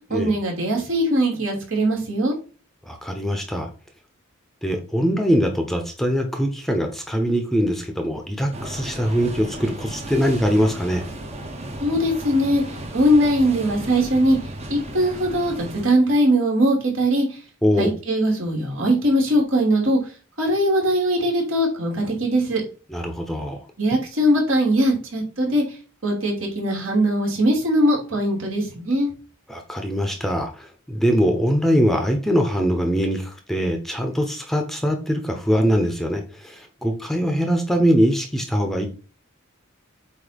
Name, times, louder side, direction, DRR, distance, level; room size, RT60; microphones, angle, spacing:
voice 1, 0.1-2.3 11.8-14.4 14.7-17.4 17.8-20.0 20.4-22.6 23.8-25.6 26.0-29.1, equal, 70° right, -1 dB, 3.0 m, -20 dB
voice 2, 2.9-3.7 4.6-11.0 17.6-17.9 22.9-23.6 29.5-38.9, equal, ahead, 4 dB, 0.9 m, -22 dB
sound 1, 8.5-15.9, right 1 dB, 30° right, 1.0 m, -35 dB
8.1 x 2.8 x 5.1 m, 0.36 s
head